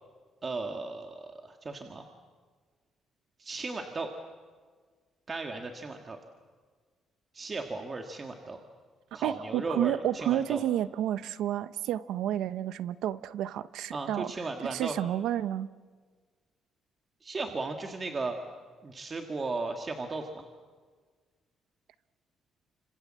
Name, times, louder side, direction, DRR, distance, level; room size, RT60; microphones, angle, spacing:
voice 1, 0.4-2.1 3.4-4.1 5.3-6.2 7.3-8.6 9.1-10.6 13.9-15.0 17.2-18.4 18.8-20.5, right 3 dB, 25° right, 4 dB, 1.7 m, -36 dB
voice 2, 9.2-14.3 14.7-15.7, right 11 dB, 85° right, 15 dB, 0.8 m, -30 dB
30.0 x 26.0 x 7.6 m, 1.6 s
cardioid pair, 145°, 0 cm